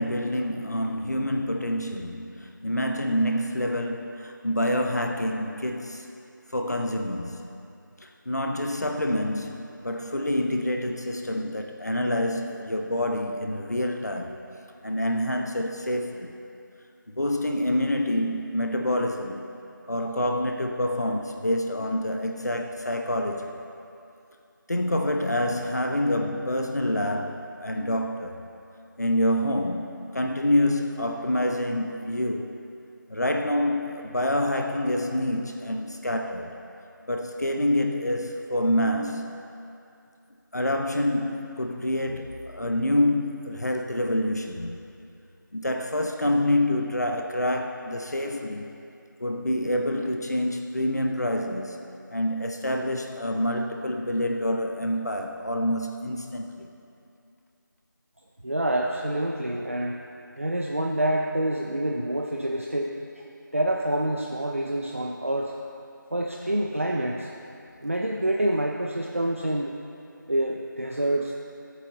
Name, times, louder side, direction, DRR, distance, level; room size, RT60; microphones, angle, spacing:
voice 1, 0.0-6.1 6.5-7.7 8.0-14.4 14.8-16.3 17.2-19.5 19.9-23.5 24.7-28.5 29.0-32.6 33.1-36.5 37.1-39.4 40.5-44.8 45.5-48.7 49.2-51.8 52.1-56.7, left 1 dB, 50° left, 3 dB, 0.9 m, -27 dB
voice 2, 58.4-60.0 60.4-65.6 66.1-67.5 67.8-69.8 70.3-71.3, right 1 dB, 40° right, 1 dB, 0.7 m, -27 dB
19.5 x 8.3 x 4.0 m, 2.7 s
figure-of-eight pair, 175°, 11 cm